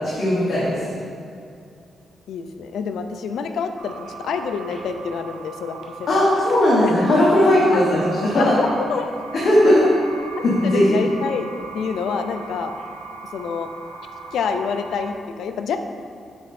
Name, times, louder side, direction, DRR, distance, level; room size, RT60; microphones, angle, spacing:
voice 1, 0.1-0.9 6.1-8.5 9.3-9.8 10.4-11.0, left 1 dB, 45° left, -7 dB, 1.1 m, -17 dB
voice 2, 2.3-6.2 6.8-6.9 8.4-9.1 9.6-9.7 10.6-11.5 11.7-12.7 13.3-13.7 14.3-15.8, left 6 dB, 75° left, 7 dB, 0.4 m, -27 dB
sound 1, 3.8-15.1, right 4 dB, 85° right, 0.8 m, -38 dB
7.0 x 4.3 x 4.1 m, 2.5 s
wide cardioid pair, 175°, 0 cm